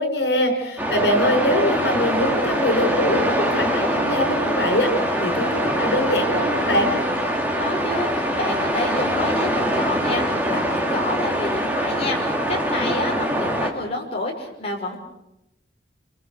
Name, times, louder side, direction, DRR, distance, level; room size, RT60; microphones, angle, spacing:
voice 1, 0.0-4.9 5.2-6.9, left 1 dB, 75° left, 5 dB, 6.2 m, -23 dB
sound 1, 0.8-13.7, equal, 10° right, 3.0 m, -23 dB
voice 2, 7.6-15.0, left 2 dB, 35° left, -1 dB, 5.9 m, -29 dB
30.0 x 24.0 x 6.7 m, 0.88 s
head